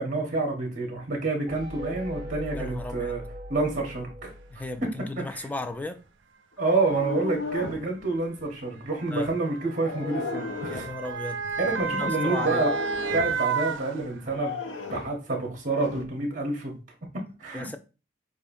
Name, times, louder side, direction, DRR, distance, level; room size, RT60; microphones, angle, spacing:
voice 1, 0.0-3.2 3.5-4.3 5.2-5.4 6.6-10.9 11.6-12.7 13.1-14.6 14.9-16.8 17.1-17.8, right 3 dB, 45° right, 1.3 m, -28 dB
sound 1, 1.5-5.2, equal, 25° right, 1.6 m, -40 dB
voice 2, 2.5-3.1 4.5-6.0 9.1-9.3 10.7-12.6 17.5-17.8, left 2 dB, 10° left, 0.3 m, -36 dB
Motor vehicle (road) / Siren, 4.5-4.6 5.6-5.8 6.9-14.5 14.9-15.0, right 5 dB, 75° right, 0.5 m, -32 dB
sound 2, 6.6-7.9 9.7-11.0 12.3-13.4 14.3-15.2 15.7-16.1, left 4 dB, 75° left, 0.7 m, -34 dB
6.5 x 2.6 x 2.6 m
head